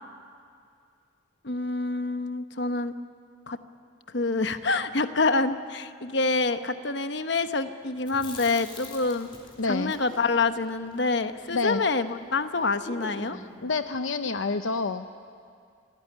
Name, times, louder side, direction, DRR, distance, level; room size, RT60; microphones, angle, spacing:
voice 1, 1.4-2.9 3.5-3.6 4.1-9.3 9.7-13.4, left 3 dB, 60° left, 9 dB, 1.1 m, -27 dB
Chewing mastication, 8.0-12.2 12.4-12.5 12.8-13.6, left 2 dB, 25° left, 3.8 m, -45 dB
voice 2, 9.6-9.9 11.5-11.8 13.3-15.1, left 3 dB, 85° left, 9 dB, 0.7 m, -28 dB
26.0 x 18.0 x 10.0 m, 2.3 s
head